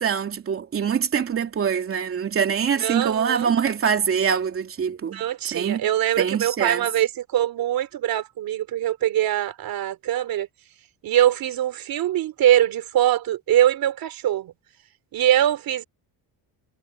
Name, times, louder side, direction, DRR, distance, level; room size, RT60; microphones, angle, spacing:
voice 1, 0.0-5.2 5.5-5.9 6.2-6.9, right 7 dB, 35° right, 3.0 m, -24 dB
voice 2, 2.8-3.5 5.1-10.5 11.0-14.5 15.1-15.8, right 12 dB, 55° right, 3.3 m, -22 dB
cardioid pair, 170°, 40 cm